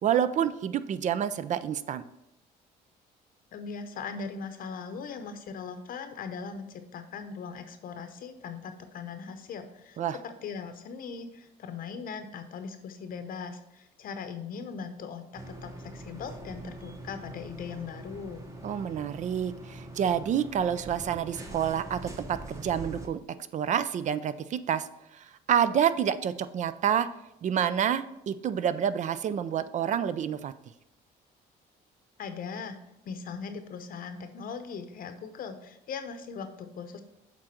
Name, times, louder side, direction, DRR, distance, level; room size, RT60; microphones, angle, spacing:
voice 1, 0.0-2.0 10.0-10.2 18.6-23.2 23.5-24.9 25.1-27.1 27.4-30.5, right 9 dB, 45° right, 13 dB, 0.5 m, -28 dB
voice 2, 3.5-18.5 32.2-32.8 33.0-37.0, left 5 dB, 55° left, 8 dB, 0.8 m, -39 dB
sound 1, 15.3-23.1, right 1 dB, 20° right, 1.0 m, -43 dB
7.4 x 3.8 x 5.9 m, 0.85 s
cardioid pair, 110°, 17 cm